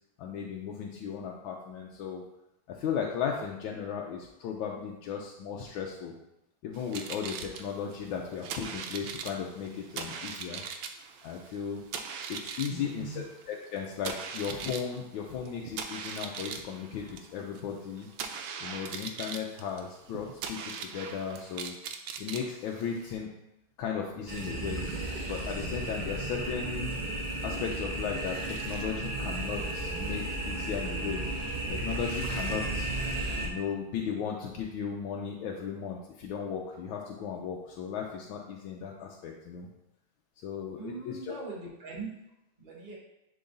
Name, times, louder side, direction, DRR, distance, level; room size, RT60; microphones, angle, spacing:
voice 1, 0.2-2.2 2.7-6.1 6.6-10.6 11.2-11.8 12.3-18.1 18.6-21.7 22.2-23.3 23.8-24.9 25.3-26.9 27.4-31.2 31.7-32.9 33.4-39.7 40.4-41.4, left 7 dB, 85° left, -1 dB, 1.4 m, -36 dB
sound 1, 6.7-23.2, right 6 dB, 90° right, 1.4 m, -41 dB
voice 2, 12.7-13.2 40.8-42.1 42.6-43.0, right 3 dB, 25° right, -5 dB, 1.5 m, -40 dB
sound 2, 24.3-33.5, right 2 dB, 50° right, 0.5 m, -34 dB
10.5 x 3.9 x 2.6 m, 0.88 s
omnidirectional pair, 2.2 m